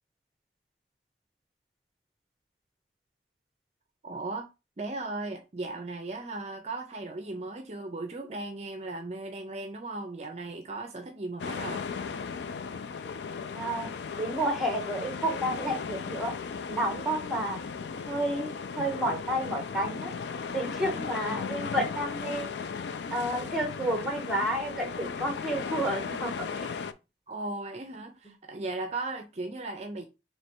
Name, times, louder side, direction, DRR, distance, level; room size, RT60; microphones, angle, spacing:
voice 1, 4.0-4.5 4.8-11.9 20.9-21.4 27.3-30.1, right 2 dB, 40° right, 0.5 m, -37 dB
sound 1, 11.4-26.9, left 5 dB, 80° left, 0.4 m, -36 dB
voice 2, 13.5-16.3 16.7-17.6 18.1-18.5 18.8-20.1 20.5-22.5 23.1-26.7, right 1 dB, ahead, 1.0 m, -30 dB
3.2 x 3.0 x 4.4 m
head